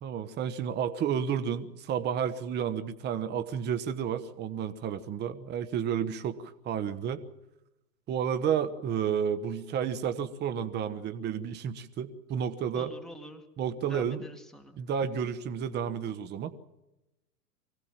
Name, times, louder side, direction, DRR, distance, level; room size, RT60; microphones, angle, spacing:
voice 1, 0.0-7.2 8.1-12.9 13.6-14.2 14.8-16.5, right 8 dB, 20° right, 10 dB, 1.2 m, -31 dB
voice 2, 12.7-13.4 13.8-14.8, equal, ahead, 4 dB, 2.1 m, -46 dB
24.5 x 17.5 x 7.4 m, 0.95 s
hypercardioid pair, 120°, 47 cm